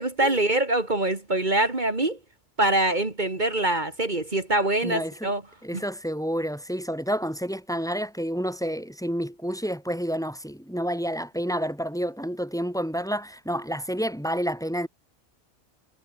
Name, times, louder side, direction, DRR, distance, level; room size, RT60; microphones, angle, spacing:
voice 1, 0.0-2.2 2.6-5.4, right 2 dB, 40° right, 2.5 m, -24 dB
voice 2, 4.8-5.3 5.6-14.9, equal, 5° left, 4.9 m, -29 dB
omnidirectional pair, 1.1 m